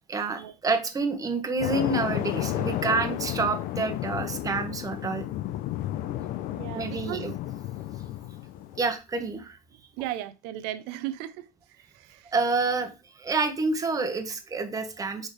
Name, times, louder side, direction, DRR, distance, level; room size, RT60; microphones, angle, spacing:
voice 1, 0.1-5.2 6.7-7.3 8.8-9.6 12.3-15.3, right 3 dB, 20° right, 1.1 m, -28 dB
sound 1, 1.6-8.8, left 14 dB, 50° left, 0.6 m, -32 dB
voice 2, 6.5-7.3 10.0-12.3, right 13 dB, 65° right, 0.7 m, -36 dB
6.3 x 5.1 x 3.3 m
supercardioid pair, 125°, 18 cm